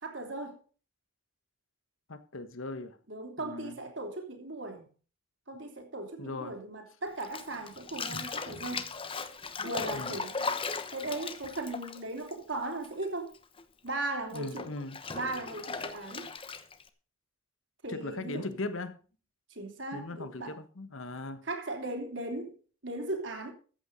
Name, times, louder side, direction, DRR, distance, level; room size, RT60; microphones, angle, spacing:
voice 1, 0.0-0.6 3.1-4.9 5.5-8.9 9.6-10.6 10.9-13.4 13.8-14.7 15.1-16.3 17.8-18.5 19.5-20.6 21.4-22.5 22.8-23.5, right 2 dB, 60° right, 3.1 m, -37 dB
voice 2, 2.1-3.0 3.4-3.8 6.2-6.6 9.9-10.1 14.3-15.0 17.9-19.0 19.9-21.5, left 2 dB, 75° left, 1.3 m, -39 dB
Bathtub (filling or washing), 7.2-13.0 13.3-16.9, left 4 dB, 25° left, 0.9 m, -38 dB
14.0 x 8.5 x 5.2 m
head